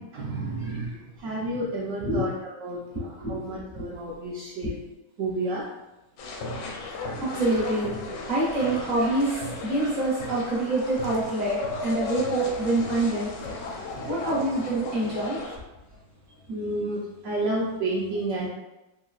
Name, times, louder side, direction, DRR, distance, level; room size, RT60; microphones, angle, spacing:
voice 1, 0.0-2.3 2.6-4.7 5.2-5.6 13.8-13.9 16.5-18.5, right 2 dB, 80° right, -5 dB, 0.6 m, -31 dB
voice 2, 0.6-1.0 2.0-2.2 2.9-3.9 7.2-7.9 8.3-13.3 14.1-15.4, right 2 dB, 35° right, -6 dB, 0.8 m, -26 dB
sound 1, 6.2-15.6, left 2 dB, 85° left, 1.2 m, -35 dB
3.2 x 2.9 x 2.3 m, 0.98 s
omnidirectional pair, 1.9 m